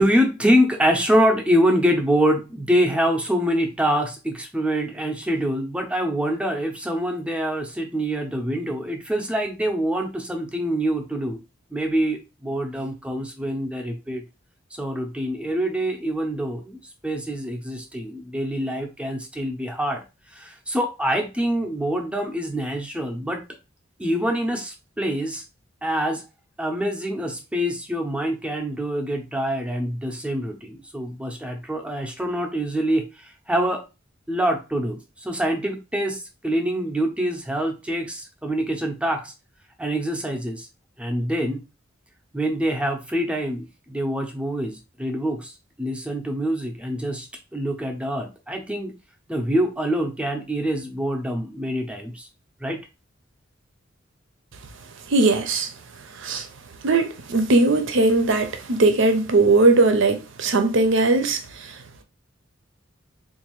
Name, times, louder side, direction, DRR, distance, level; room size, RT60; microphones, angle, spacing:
voice 1, 0.0-11.4 11.7-14.2 14.7-20.0 20.3-23.4 24.0-25.4 25.8-26.2 26.6-33.8 34.3-39.3 39.8-40.7 41.0-41.7 42.3-48.9 49.3-52.3 52.6-52.8, equal, 5° right, 0.6 m, -25 dB
voice 2, 55.1-55.7 56.1-56.5 56.8-61.8, right 3 dB, 65° right, 0.7 m, -19 dB
3.9 x 2.6 x 3.0 m
head